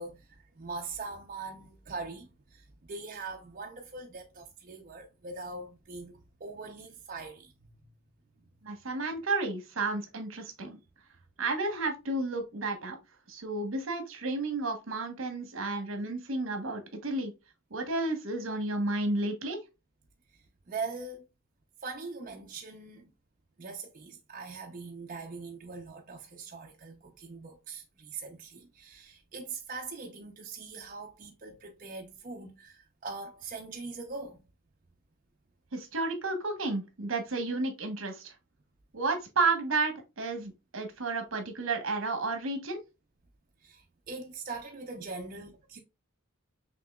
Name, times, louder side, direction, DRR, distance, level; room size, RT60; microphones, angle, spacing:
voice 1, 0.0-7.9 15.7-15.8 20.7-21.2 21.8-23.1 23.6-34.4 43.6-45.8, right 4 dB, 40° right, 0.6 m, -42 dB
voice 2, 8.6-10.8 11.4-13.0 13.3-17.3 17.7-19.6 35.7-38.3 38.9-42.8, right 3 dB, 75° right, 1.1 m, -32 dB
6.0 x 2.9 x 2.2 m
head